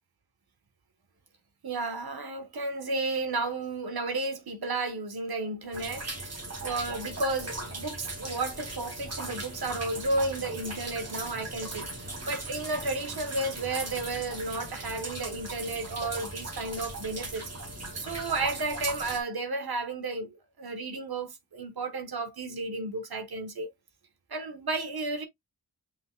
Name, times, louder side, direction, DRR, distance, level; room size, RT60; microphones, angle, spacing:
voice 1, 1.6-6.1 6.6-11.9 12.2-17.5 17.9-23.7 24.3-25.3, right 2 dB, 70° right, 1.2 m, -32 dB
sound 1, 5.7-19.2, right 2 dB, 40° right, 1.8 m, -38 dB
5.9 x 3.8 x 2.2 m
cardioid pair, 55°, 39 cm